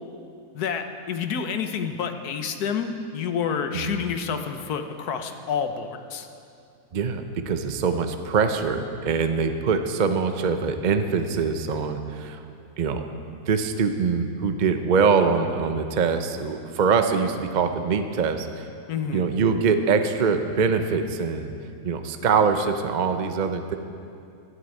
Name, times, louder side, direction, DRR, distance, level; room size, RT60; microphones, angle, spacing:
voice 1, 0.5-6.3 18.9-19.2, left 6 dB, 75° left, 7 dB, 1.4 m, -29 dB
voice 2, 6.9-12.4 12.8-13.0 13.3-18.7 19.1-21.5 21.8-23.8, right 5 dB, 50° right, 7 dB, 0.5 m, -23 dB
13.0 x 8.0 x 9.0 m, 2.5 s
omnidirectional pair, 1.7 m